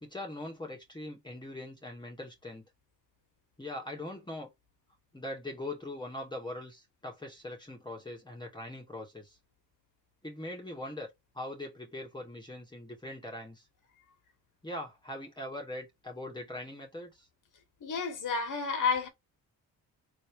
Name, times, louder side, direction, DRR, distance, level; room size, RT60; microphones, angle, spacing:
voice 1, 0.0-2.7 3.6-4.5 5.1-9.4 10.2-13.6 14.6-17.3, left 1 dB, 10° left, 1.8 m, -41 dB
voice 2, 17.8-19.1, left 5 dB, 60° left, 1.8 m, -30 dB
3.9 x 3.5 x 3.3 m
supercardioid pair, 65°, 36 cm